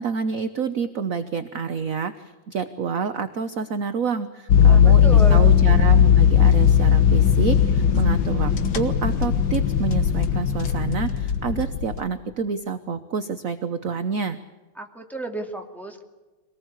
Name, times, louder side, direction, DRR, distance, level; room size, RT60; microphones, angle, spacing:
voice 1, 0.0-14.4, right 6 dB, 50° right, 10 dB, 1.2 m, -28 dB
Start car and drive, 4.5-12.0, left 8 dB, 75° left, 2.3 m, -17 dB
voice 2, 4.7-5.5 14.8-16.0, right 2 dB, ahead, 2 dB, 2.5 m, -32 dB
24.5 x 19.0 x 8.2 m, 1.2 s
omnidirectional pair, 2.2 m